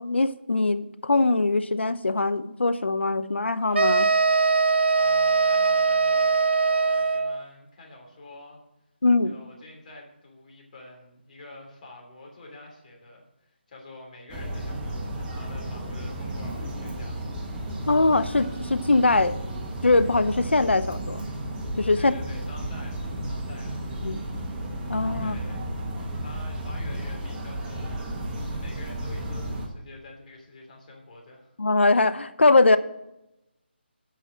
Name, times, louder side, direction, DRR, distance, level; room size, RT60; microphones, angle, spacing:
voice 1, 0.0-4.1 9.0-9.4 17.9-19.4 19.8-21.2 21.8-22.1 24.0-24.2 24.9-25.4 31.6-32.8, left 3 dB, 80° left, 12 dB, 0.7 m, -22 dB
sound 1, 3.7-7.4, right 4 dB, 75° right, 0.4 m, -21 dB
voice 2, 4.9-8.6 9.2-17.2 22.0-23.8 25.2-25.6 26.2-28.0 28.4-31.5, left 2 dB, 45° left, 0 dB, 3.1 m, -46 dB
sound 2, 14.3-29.7, right 1 dB, 15° right, 1.1 m, -33 dB
8.3 x 5.8 x 7.4 m, 0.90 s
figure-of-eight pair, 155°, 6 cm